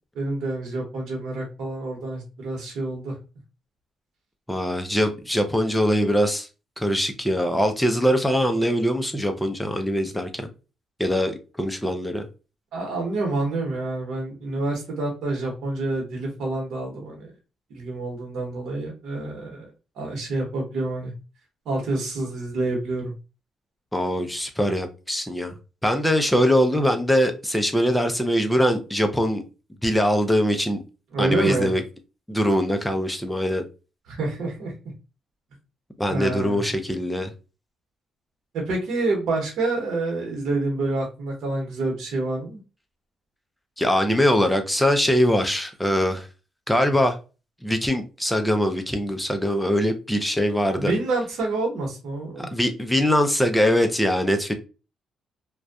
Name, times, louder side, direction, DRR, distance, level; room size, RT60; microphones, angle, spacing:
voice 1, 0.1-3.1 12.7-17.3 17.7-19.6 20.0-21.1 21.7-23.1 31.1-31.7 34.1-34.7 36.1-36.6 38.5-42.6 50.7-52.5, right 2 dB, 75° right, 0.9 m, -27 dB
voice 2, 4.5-6.5 6.8-10.5 11.0-12.3 23.9-25.5 25.8-29.4 29.8-30.8 31.2-31.8 32.3-33.6 36.0-37.3 43.8-46.3 46.7-47.2 47.6-50.9 52.4-54.5, equal, 5° left, 0.5 m, -22 dB
2.6 x 2.2 x 2.3 m
cardioid pair, 90°, 0 cm